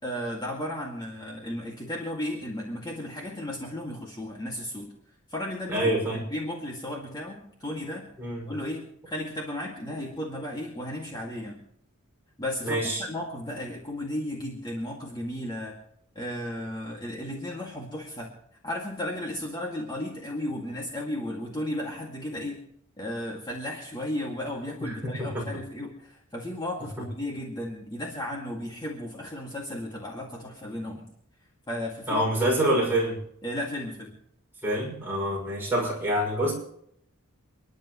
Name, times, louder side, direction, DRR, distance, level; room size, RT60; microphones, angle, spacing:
voice 1, 0.0-4.9 5.3-8.1 8.5-11.6 12.4-15.8 16.2-18.3 18.6-22.6 23.0-31.1 31.7-32.2 32.9-33.0 33.4-34.2, left 1 dB, 20° left, -2 dB, 2.1 m, -34 dB
voice 2, 5.7-6.2 8.2-8.5 12.6-13.0 24.8-25.4 32.1-33.1 34.6-36.5, right 1 dB, 10° right, -4 dB, 6.0 m, -26 dB
30.0 x 11.0 x 3.1 m, 0.71 s
head